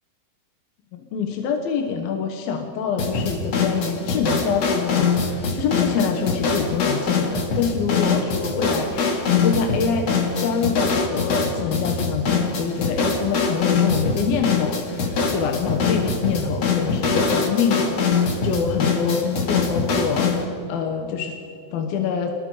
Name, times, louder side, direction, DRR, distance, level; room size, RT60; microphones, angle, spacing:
voice 1, 0.9-10.1 10.4-21.4 21.7-22.3, left 6 dB, 80° left, 4 dB, 3.2 m, -26 dB
sound 1, 3.0-20.4, left 4 dB, 50° left, 3.1 m, -23 dB
26.5 x 21.0 x 5.0 m, 2.5 s
omnidirectional pair, 4.2 m